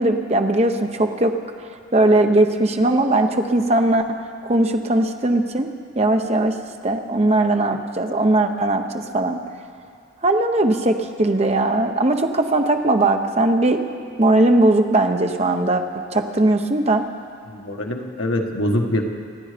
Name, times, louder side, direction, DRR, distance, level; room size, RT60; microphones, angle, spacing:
voice 1, 0.0-1.3 1.9-4.1 4.4-5.7 5.9-6.5 6.8-9.4 10.2-13.8 14.2-15.8 16.1-17.0, right 2 dB, 30° right, 5 dB, 0.8 m, -19 dB
voice 2, 17.5-19.0, left 1 dB, 75° left, 2 dB, 1.4 m, -24 dB
26.0 x 9.4 x 5.1 m, 2.4 s
head